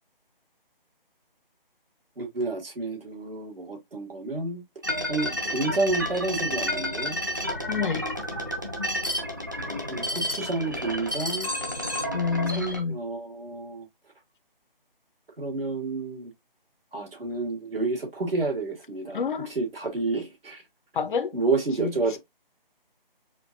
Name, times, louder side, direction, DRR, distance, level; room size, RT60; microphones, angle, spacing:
voice 1, 2.2-4.6 5.1-7.2 9.9-11.5 12.5-13.9 15.4-16.3 16.9-20.6 21.3-22.2, right 3 dB, 75° right, 2.1 m, -30 dB
sound 1, 4.8-12.8, equal, 20° right, 0.4 m, -30 dB
voice 2, 7.7-8.0 12.1-13.0 19.1-19.5 20.9-21.4 21.8-22.2, left 5 dB, 60° left, 0.5 m, -28 dB
4.4 x 2.6 x 2.6 m
figure-of-eight pair, 160°, 29 cm